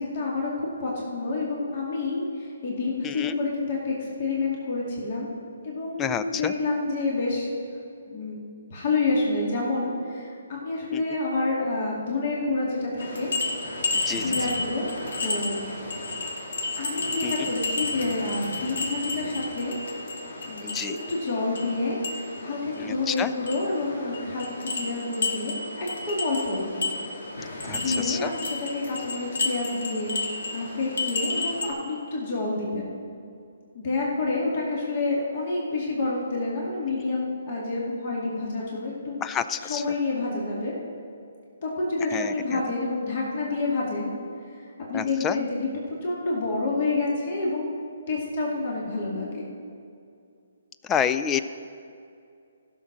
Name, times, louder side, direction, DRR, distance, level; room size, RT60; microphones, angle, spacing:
voice 1, 0.0-5.3 5.6-7.5 8.1-8.4 8.7-13.3 14.1-15.6 16.8-19.8 20.4-26.9 27.7-32.9 33.7-39.2 39.6-40.7 41.6-44.1 44.4-47.6 48.1-49.5, left 3 dB, 45° left, -4 dB, 2.3 m, -28 dB
voice 2, 6.0-6.5 10.9-11.0 14.1-14.2 17.2-17.3 20.6-20.9 22.8-23.3 27.7-28.3 39.2-39.8 42.1-42.6 44.9-45.4 50.9-51.4, left 8 dB, 15° left, 12 dB, 0.3 m, -28 dB
sound 1, 13.0-31.7, left 2 dB, 75° left, 2.6 m, -32 dB
15.0 x 6.4 x 6.1 m, 2.4 s
hypercardioid pair, 160°, 0 cm